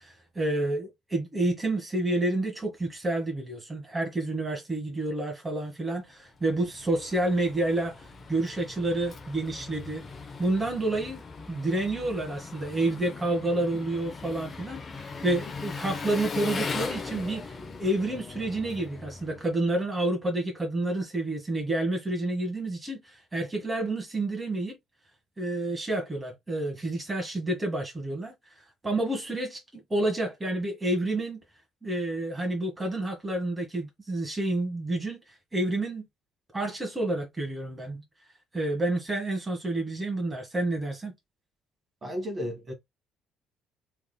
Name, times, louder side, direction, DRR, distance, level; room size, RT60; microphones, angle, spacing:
voice 1, 0.0-10.0 10.4-11.2 11.5-24.8 25.4-31.4 31.8-35.2 35.5-36.1 36.5-38.0 38.5-41.1, right 2 dB, 20° right, 1.5 m, -29 dB
Engine, 6.3-19.9, left 4 dB, 35° left, 0.9 m, -39 dB
voice 2, 42.0-42.7, equal, 35° right, 1.6 m, -33 dB
3.4 x 3.3 x 2.2 m
figure-of-eight pair, 50°, 0 cm